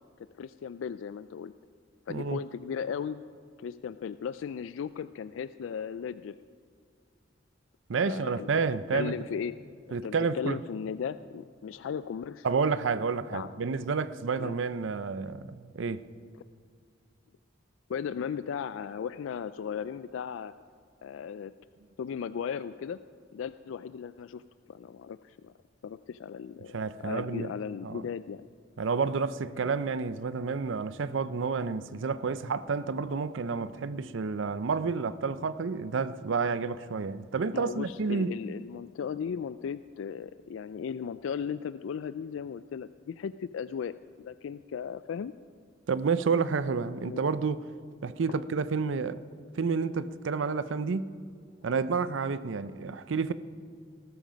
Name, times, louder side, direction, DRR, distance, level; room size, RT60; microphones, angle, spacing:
voice 1, 0.4-1.5 2.1-3.2 3.6-6.4 8.0-8.5 8.9-9.5 9.9-12.5 13.3-13.7 14.4-14.5 17.9-20.5 21.0-21.5 22.0-23.0 23.3-24.4 24.7-25.5 25.8-28.5 37.5-45.3 47.0-47.2 48.3-48.4, left 7 dB, 80° left, 0.3 m, -36 dB
voice 2, 2.1-2.4 7.9-9.1 9.9-10.6 12.4-16.0 26.7-27.5 27.8-28.1 28.8-38.3 45.9-47.6 48.0-49.2 49.6-51.1 51.6-53.3, right 5 dB, 75° right, 0.5 m, -30 dB
18.5 x 13.0 x 5.2 m
head